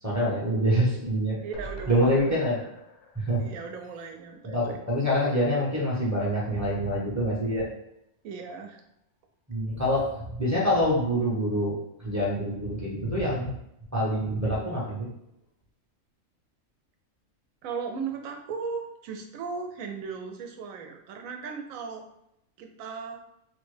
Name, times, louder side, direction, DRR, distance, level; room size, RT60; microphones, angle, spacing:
voice 1, 0.0-1.4 1.9-2.6 3.1-3.5 4.4-7.7 9.5-11.8 12.0-13.5 13.9-15.1, equal, 15° right, -6 dB, 0.6 m, -26 dB
voice 2, 1.4-2.1 2.5-2.6 3.4-4.7 8.2-8.8 17.6-22.1 22.6-23.2, right 5 dB, 85° right, 4 dB, 1.0 m, -37 dB
sound 1, 1.5-4.8 5.1-5.2 5.5-5.6, right 2 dB, 65° left, 0.8 m, -45 dB
3.4 x 2.1 x 3.1 m, 0.81 s
omnidirectional pair, 1.4 m